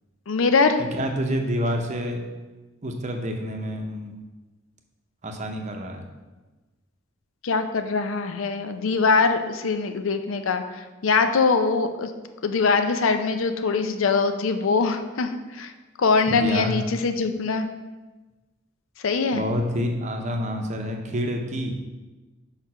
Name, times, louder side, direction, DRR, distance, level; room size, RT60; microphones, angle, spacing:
voice 1, 0.3-0.8 7.4-12.1 12.4-15.7 16.0-17.7 19.0-19.4, left 4 dB, 75° left, 8 dB, 0.5 m, -22 dB
voice 2, 0.8-2.2 2.8-4.1 5.2-6.0 16.3-16.7 19.3-21.7, equal, 35° right, 3 dB, 0.7 m, -28 dB
5.1 x 4.7 x 5.5 m, 1.2 s
head